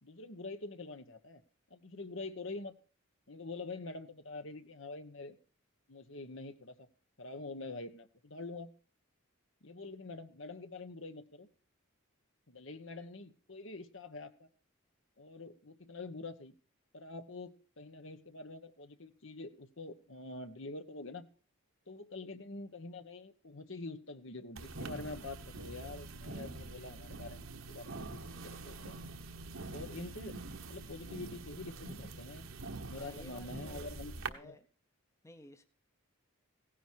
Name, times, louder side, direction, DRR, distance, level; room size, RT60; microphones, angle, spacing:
voice 1, 0.0-1.4 1.7-2.7 3.3-5.4 5.9-6.9 7.2-8.7 9.6-11.5 12.5-14.5 15.2-16.6 16.9-21.3 21.9-29.0 29.7-30.3 30.7-32.4 32.9-34.5, left 3 dB, 60° left, 9 dB, 1.2 m, -46 dB
sound 1, 24.6-34.3, right 3 dB, 65° right, 1.3 m, -45 dB
voice 2, 32.9-33.8 34.2-34.7 35.2-35.6, left 1 dB, 15° left, 9 dB, 0.8 m, -55 dB
17.0 x 10.0 x 4.6 m, 0.38 s
head